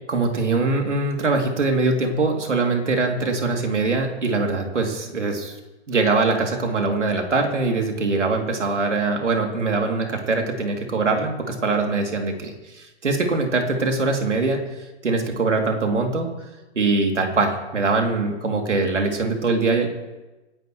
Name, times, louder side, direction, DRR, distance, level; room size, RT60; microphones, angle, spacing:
voice 1, 0.1-5.6 5.9-14.6 15.0-16.3 16.7-19.9, right 3 dB, 85° right, 2 dB, 3.0 m, -22 dB
27.0 x 10.5 x 3.2 m, 1.1 s
hypercardioid pair, 115°, 35 cm